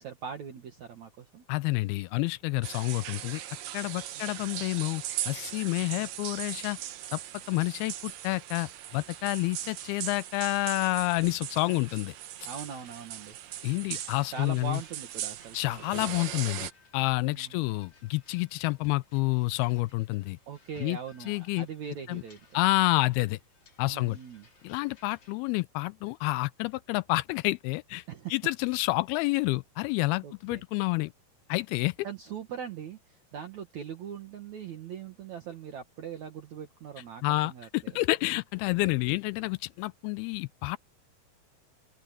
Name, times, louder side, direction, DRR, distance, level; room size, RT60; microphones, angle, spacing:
voice 1, 0.0-1.4 5.8-6.1 12.4-13.4 14.3-15.9 17.3-17.7 20.5-22.6 23.9-24.5 28.1-28.3 30.2-30.6 32.0-38.0, right 7 dB, 55° right, 2.6 m, -41 dB
voice 2, 1.5-3.4 3.7-6.8 7.1-7.2 7.5-12.1 13.6-14.8 15.5-20.4 20.8-21.0 21.3-21.7 22.1-22.2 22.5-23.4 23.8-24.2 24.6-28.0 28.3-31.1 31.5-32.0 37.2-40.8, left 21 dB, 85° left, 2.5 m, -29 dB
sound 1, 2.6-16.7, right 12 dB, 70° right, 1.7 m, -39 dB
sound 2, 12.4-25.3, left 4 dB, 45° left, 5.6 m, -62 dB
open air
omnidirectional pair, 4.4 m